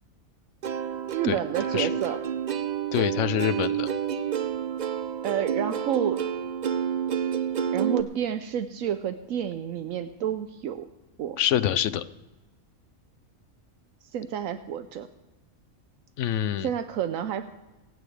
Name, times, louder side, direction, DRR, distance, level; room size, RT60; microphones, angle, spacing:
Plucked string instrument, 0.6-8.0, right 8 dB, 60° right, 0.4 m, -29 dB
voice 1, 1.1-2.2 5.2-6.2 7.7-10.9 11.2-11.4 14.1-15.1 16.6-17.5, right 9 dB, 80° right, 9 dB, 1.0 m, -29 dB
voice 2, 2.9-3.9 11.4-12.0 16.2-16.7, left 10 dB, 70° left, 15 dB, 0.9 m, -25 dB
25.0 x 9.3 x 3.3 m, 1.1 s
omnidirectional pair, 1.4 m